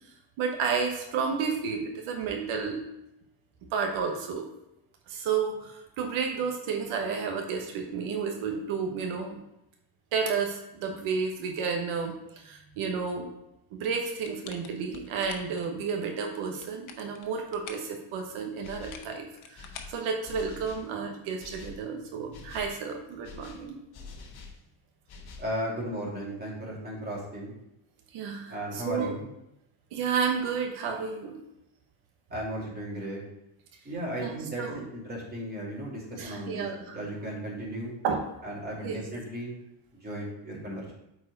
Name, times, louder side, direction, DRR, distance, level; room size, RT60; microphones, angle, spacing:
voice 1, 0.4-2.8 3.7-4.5 5.1-9.4 10.1-13.3 13.7-23.8 28.1-29.1 29.9-31.4 34.2-34.8 36.2-37.0 38.0-38.2 38.8-39.0, right 5 dB, 90° right, 2 dB, 1.2 m, -31 dB
sound 1, 14.2-15.7 16.4-17.9 18.7-20.7, left 7 dB, 75° left, 1.0 m, -47 dB
sound 2, 18.6-19.1 19.5-20.9 21.4-21.8 22.3-22.8 23.2-24.6 25.1-25.5, left 4 dB, 55° left, 1.2 m, -46 dB
voice 2, 25.4-27.6 28.5-29.2 32.3-33.2 33.8-36.6 36.9-37.9 38.4-39.6 39.9-40.9, equal, 20° right, -5 dB, 2.7 m, -35 dB
8.2 x 4.7 x 4.0 m, 0.85 s
cardioid pair, 130°, 48 cm